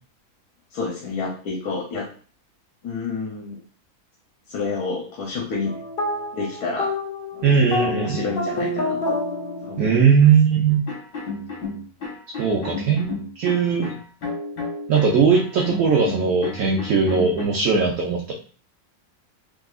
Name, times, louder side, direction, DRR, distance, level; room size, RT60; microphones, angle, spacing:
voice 1, 0.7-2.1 2.8-3.6 4.5-5.8 6.3-6.9 7.3-9.2 9.6-9.9, left 4 dB, 90° left, -1 dB, 1.2 m, -29 dB
sound 1, 5.6-10.3, left 2 dB, 45° left, 0.8 m, -28 dB
voice 2, 7.4-8.3 9.8-10.8 12.4-14.0 14.9-18.3, right 6 dB, 70° right, -1 dB, 1.0 m, -19 dB
sound 2, 10.9-17.4, left 3 dB, 75° left, 1.6 m, -32 dB
3.7 x 2.8 x 2.3 m, 0.40 s
omnidirectional pair, 1.6 m